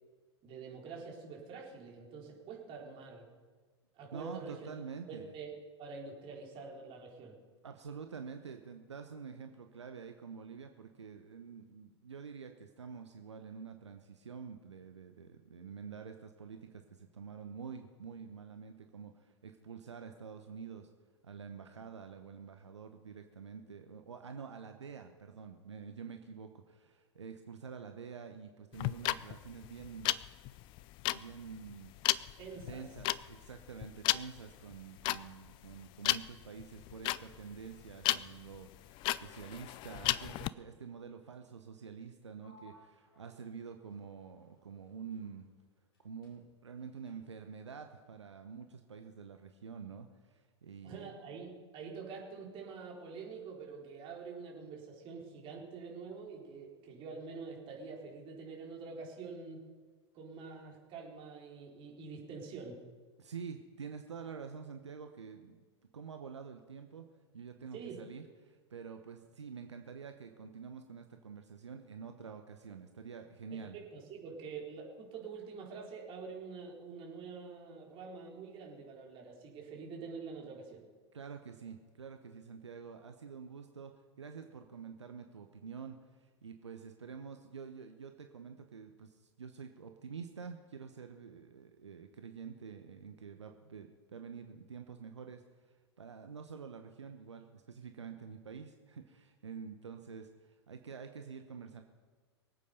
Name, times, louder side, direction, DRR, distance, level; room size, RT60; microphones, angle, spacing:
voice 1, 0.4-3.3 3.9-4.7 5.1-5.5 5.8-7.4 32.4-32.8 50.8-59.7 60.1-62.8 67.7-68.0 73.5-80.8, right 5 dB, 35° right, -1 dB, 4.1 m, -46 dB
voice 2, 4.1-5.3 7.6-20.9 21.2-30.1 31.1-31.9 32.7-45.5 46.0-51.3 63.2-65.6 65.9-67.1 67.3-73.8 81.1-83.9 84.2-101.8, right 6 dB, 75° right, 6 dB, 1.1 m, -48 dB
sound 1, 28.7-40.5, left 16 dB, 35° left, 0.5 m, -35 dB
Sliding door, 42.4-46.0 46.2-47.5, left 2 dB, 50° left, 6.1 m, -65 dB
24.0 x 8.5 x 5.3 m, 1.5 s
figure-of-eight pair, 100°, 15 cm